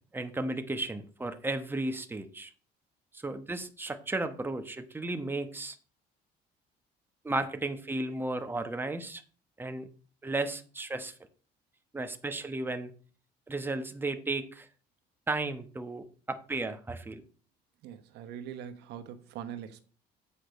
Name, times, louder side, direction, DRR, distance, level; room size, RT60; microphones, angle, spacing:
voice 1, 0.1-2.5 3.1-5.8 7.2-9.2 9.6-9.9 10.2-11.1 11.9-12.9 13.5-14.7 15.3-17.2, right 2 dB, 10° right, 1.1 m, -34 dB
voice 2, 17.8-19.8, right 9 dB, 80° right, 1.1 m, -42 dB
8.6 x 4.9 x 6.7 m
cardioid pair, 110°, 17 cm